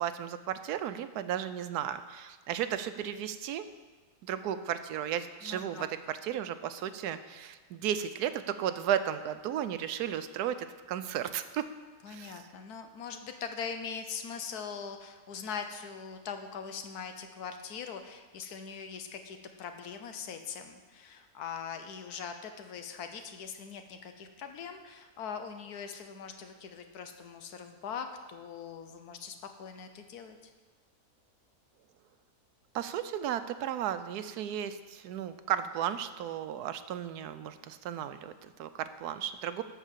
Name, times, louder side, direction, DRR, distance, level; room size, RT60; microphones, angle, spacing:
voice 1, 0.0-3.6 4.2-11.7 12.1-12.4 32.7-39.6, right 10 dB, 90° right, 11 dB, 1.2 m, -34 dB
voice 2, 5.4-5.9 12.0-30.4, left 6 dB, 80° left, 7 dB, 1.4 m, -41 dB
12.0 x 4.6 x 7.3 m, 1.4 s
omnidirectional pair, 1.6 m